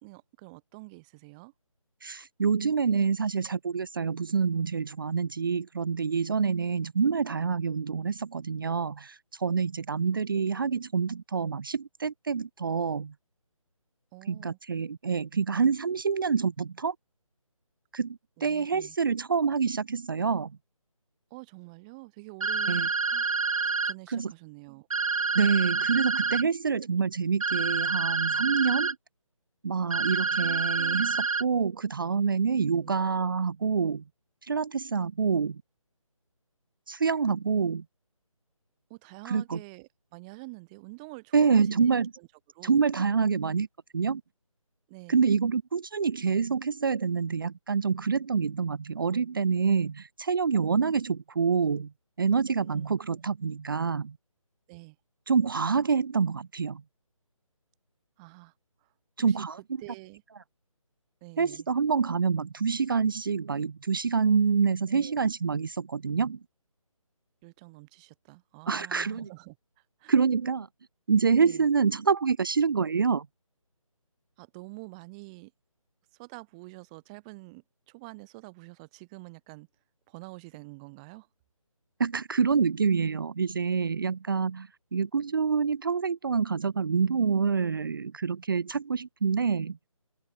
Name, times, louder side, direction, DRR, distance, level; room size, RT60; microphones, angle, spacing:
voice 1, 0.0-1.5 10.3-10.4 14.1-14.6 18.4-19.0 21.3-23.2 23.8-24.9 30.4-31.2 32.8-32.9 38.9-41.9 42.2-42.3 42.5-42.8 44.9-45.3 52.6-52.9 53.4-53.5 54.7-55.0 58.2-58.5 58.8-58.9 59.3-59.4 59.8-60.2 61.2-61.7 64.9-65.2 67.4-69.6 70.0-70.1 71.4-71.7 74.4-75.5 76.1-79.7 80.1-81.3, right 27 dB, 10° right, 1.1 m, -47 dB
voice 2, 2.0-13.1 14.3-16.9 17.9-20.5 22.7-22.9 24.1-24.3 25.3-29.0 29.6-34.0 34.4-35.6 36.9-37.8 39.2-39.6 41.3-42.1 42.6-43.7 43.9-44.2 45.1-51.9 52.2-54.2 55.3-56.8 59.2-59.6 61.4-66.4 68.7-69.3 70.1-70.7 71.1-73.3 82.0-89.8, right 5 dB, 40° right, 0.8 m, -27 dB
sound 1, 22.4-23.9 24.9-26.4 27.4-28.9 29.9-31.4, right 5 dB, 70° right, 0.5 m, -27 dB
figure-of-eight pair, 150°, 18 cm